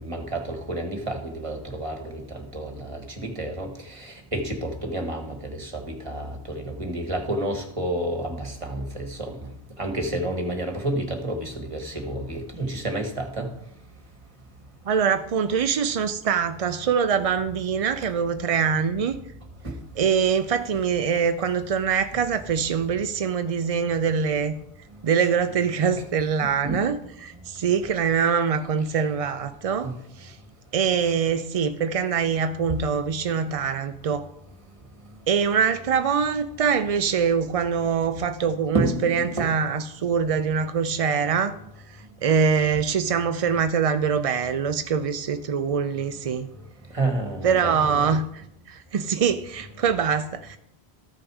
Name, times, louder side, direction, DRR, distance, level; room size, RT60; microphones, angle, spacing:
voice 1, 0.0-9.3 9.8-13.5 19.6-19.7 26.6-26.8 29.8-29.9 38.7-39.5 46.9-48.2, right 1 dB, 30° right, 3 dB, 1.6 m, -30 dB
voice 2, 14.9-19.2 20.0-24.5 25.0-29.9 30.2-30.4 30.7-34.3 35.3-41.6 42.2-46.5 47.4-48.2 48.7-50.6, right 6 dB, 55° right, 9 dB, 0.4 m, -24 dB
14.0 x 6.2 x 4.8 m, 0.76 s
omnidirectional pair, 1.1 m